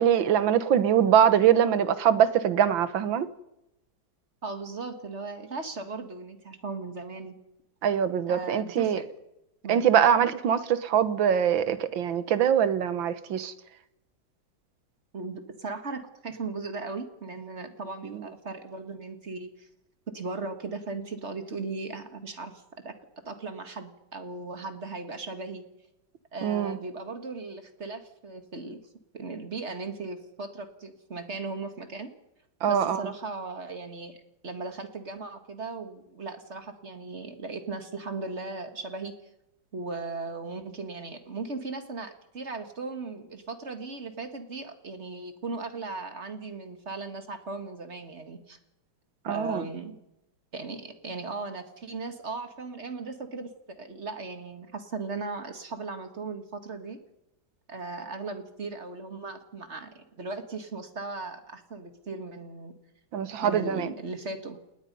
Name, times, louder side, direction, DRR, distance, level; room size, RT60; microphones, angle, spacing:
voice 1, 0.0-3.3 7.8-9.0 9.7-13.5 18.0-18.2 26.4-26.8 32.6-33.0 49.3-49.7 63.1-63.9, right 9 dB, 90° right, 1.9 m, -23 dB
voice 2, 4.4-7.4 8.3-9.1 9.6-9.8 15.1-19.7 20.1-22.9 23.3-25.6 26.3-28.8 29.1-32.1 32.7-34.2 34.4-39.1 39.7-48.6 49.3-50.0 50.5-57.0 57.7-62.7 63.4-64.6, right 3 dB, 35° right, 2.1 m, -37 dB
30.0 x 19.0 x 5.5 m
omnidirectional pair, 2.1 m